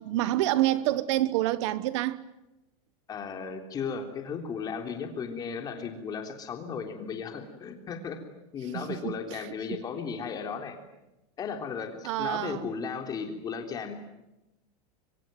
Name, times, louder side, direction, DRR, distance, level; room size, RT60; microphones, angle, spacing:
voice 1, 0.0-2.2 8.7-9.5 12.0-12.7, right 15 dB, 55° right, 1.1 m, -28 dB
voice 2, 3.1-8.2 8.5-10.8 11.4-14.0, left 6 dB, 20° left, 3.6 m, -35 dB
25.5 x 24.5 x 9.2 m
supercardioid pair, 165°, 18 cm